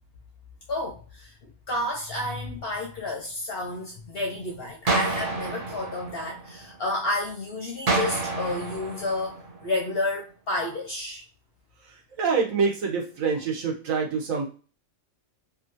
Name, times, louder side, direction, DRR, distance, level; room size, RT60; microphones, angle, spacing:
voice 1, 0.7-9.4 9.6-11.2, left 2 dB, 60° left, 0 dB, 0.7 m, -30 dB
sound 1, 4.9-6.9 7.9-9.9, right 3 dB, 40° right, 0.5 m, -29 dB
voice 2, 11.8-14.5, right 5 dB, 75° right, 0 dB, 1.2 m, -26 dB
3.0 x 2.5 x 2.6 m, 0.35 s
omnidirectional pair, 1.4 m